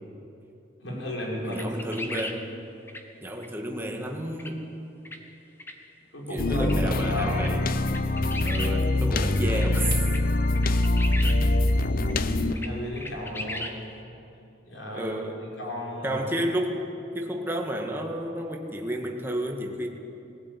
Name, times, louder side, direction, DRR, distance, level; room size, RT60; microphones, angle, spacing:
voice 1, 0.8-2.1 6.1-7.6 11.8-13.7 14.6-15.2 15.6-16.2, left 1 dB, 80° left, -3 dB, 5.9 m, -34 dB
voice 2, 1.4-2.5 3.2-4.6 6.3-7.6 8.4-9.9 14.9-15.5 16.0-16.8 17.1-19.9, right 1 dB, 10° right, 1 dB, 2.0 m, -31 dB
sound 1, 1.5-2.4 2.9-3.0 3.4-3.5 4.4-4.5 5.0-5.2 5.6-5.7 6.6-6.8 7.0-7.1 7.4-7.5 7.9-8.7 9.3-9.7 10.1-10.2 10.5-11.4 11.7-11.8 12.1-12.2 12.5-12.7 12.9-13.7, left 1 dB, 10° left, 1.5 m, -36 dB
sound 2, 6.4-12.5, left 2 dB, 50° left, 0.8 m, -24 dB
21.0 x 16.0 x 9.6 m, 2.8 s
head